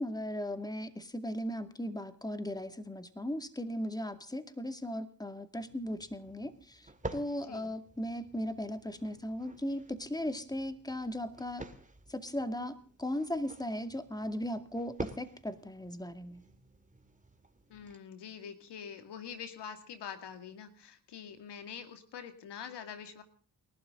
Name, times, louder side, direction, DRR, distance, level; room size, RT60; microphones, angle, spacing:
voice 1, 0.0-11.7 12.1-16.4, left 1 dB, 10° left, 9 dB, 2.2 m, -37 dB
sound 1, 5.6-18.0, right 2 dB, 20° right, 2.3 m, -49 dB
voice 2, 17.7-23.2, left 7 dB, 85° left, 8 dB, 2.3 m, -45 dB
29.0 x 12.0 x 3.8 m, 0.43 s
cardioid pair, 60°, 40 cm